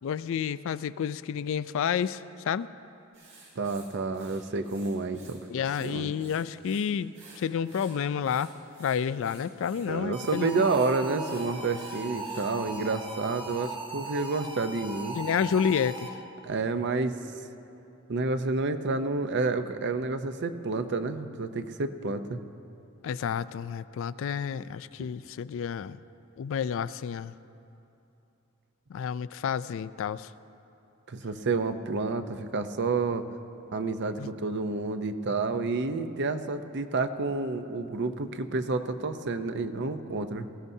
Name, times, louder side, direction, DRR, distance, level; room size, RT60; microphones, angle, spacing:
voice 1, 0.0-2.7 5.5-8.5 8.8-10.6 15.2-16.2 23.0-26.0 26.4-27.3 28.9-30.3 34.2-34.3, left 7 dB, 70° left, 16 dB, 0.3 m, -30 dB
Writing, 3.1-5.4 5.6-6.8 7.1-12.5, right 4 dB, 80° right, 4.0 m, -53 dB
voice 2, 3.6-5.4 5.8-6.1 9.9-15.2 16.4-17.1 18.1-22.4 31.1-33.3 33.7-40.5, right 3 dB, 55° right, 9 dB, 0.6 m, -29 dB
sound 1, 10.1-16.4, right 2 dB, 25° right, 1.0 m, -39 dB
20.5 x 16.0 x 2.7 m, 2.8 s
head